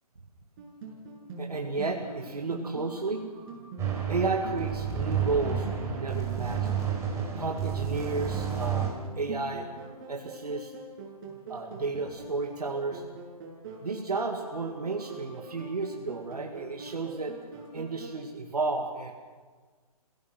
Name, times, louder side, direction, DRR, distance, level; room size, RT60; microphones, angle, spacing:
sound 1, 0.6-18.1, right 3 dB, 40° right, 6.6 m, -44 dB
voice 1, 1.4-3.2 4.1-6.8 7.4-8.9 9.2-9.6 10.1-10.7 11.5-13.0 13.8-17.4 17.7-19.1, right 3 dB, 85° right, 2 dB, 2.1 m, -32 dB
sound 2, 3.8-8.9, right 7 dB, 15° right, 4.3 m, -31 dB
27.5 x 16.5 x 6.1 m, 1.5 s
figure-of-eight pair, 140°, 19 cm